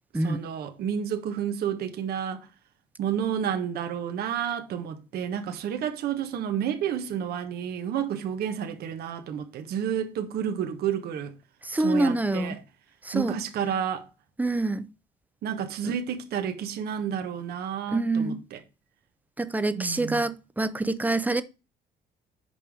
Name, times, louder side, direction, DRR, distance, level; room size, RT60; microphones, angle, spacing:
voice 1, 0.2-2.5 3.0-11.3 11.7-12.6 13.1-14.1 15.4-18.6 19.8-20.2, right 8 dB, 70° right, 1.3 m, -30 dB
voice 2, 11.6-12.6 13.0-13.4 14.4-14.9 15.8-15.9 17.9-18.4 19.4-21.4, right 2 dB, 10° right, 0.8 m, -26 dB
7.0 x 5.4 x 4.9 m
cardioid pair, 110°, 17 cm